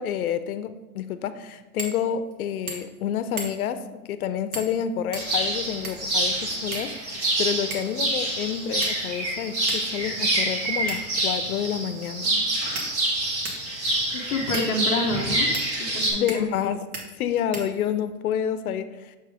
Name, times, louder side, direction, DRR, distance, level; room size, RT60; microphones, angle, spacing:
voice 1, 0.0-12.4 16.1-16.8 17.2-19.2, left 9 dB, 70° left, 12 dB, 0.6 m, -29 dB
sound 1, 1.8-2.0 2.3-2.4 2.7-3.0 3.4-3.8 4.5-4.8 5.1-6.1 6.7-7.3 7.7-8.0 8.8-9.2 9.7-9.8 10.9-11.2 12.0-12.1 12.7-13.7 14.5-14.7 15.5-15.7 16.3-16.6 16.9-17.1 17.5-18.1, right 3 dB, 70° right, 1.6 m, -36 dB
nature-ambience, 5.1-16.1, right 1 dB, 50° right, 1.9 m, -27 dB
voice 2, 14.1-15.5 15.8-16.5, left 2 dB, 10° left, -5 dB, 0.6 m, -28 dB
6.9 x 3.4 x 5.0 m, 1.2 s
hypercardioid pair, 165°, 45 cm